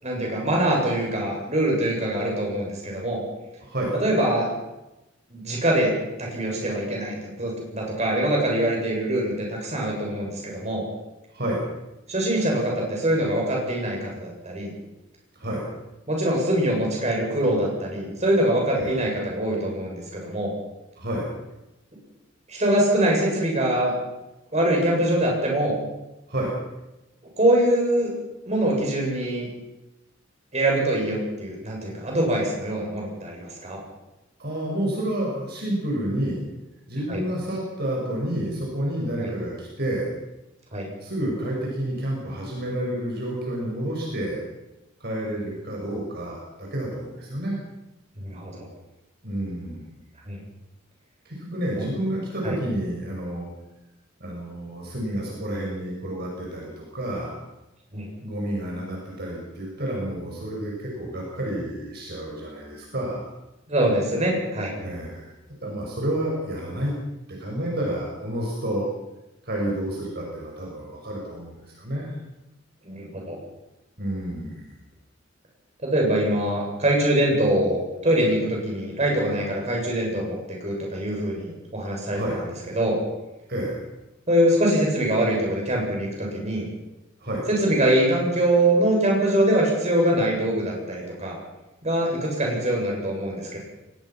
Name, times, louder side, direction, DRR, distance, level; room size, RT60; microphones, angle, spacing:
voice 1, 0.0-3.2 3.9-4.5 5.3-5.9 6.2-10.8 12.1-14.7 16.1-20.5 22.5-23.9 24.5-25.8 27.4-28.1 28.5-29.5 30.5-33.8 37.1-37.2 39.2-39.3 40.7-40.9 48.2-48.7 50.3-50.4 51.7-51.9 52.4-52.6 57.9-58.1 63.7-64.7 72.8-73.4 75.8-82.4 82.7-83.0 84.3-86.7 87.5-91.4 91.8-93.6, right 1 dB, 35° right, -1 dB, 7.4 m, -23 dB
voice 2, 3.6-3.9 11.3-11.6 15.4-15.7 18.7-19.0 21.0-21.3 26.3-26.5 34.4-36.4 36.9-40.1 41.0-44.4 45.0-47.6 49.2-49.9 51.2-53.5 54.2-57.4 58.2-63.3 64.8-65.3 65.6-66.9 67.3-68.9 69.4-72.1 74.0-74.7 82.1-82.4 83.5-83.8 87.2-87.4, right 1 dB, 55° right, -2 dB, 6.2 m, -29 dB
23.5 x 20.5 x 6.0 m, 0.97 s
head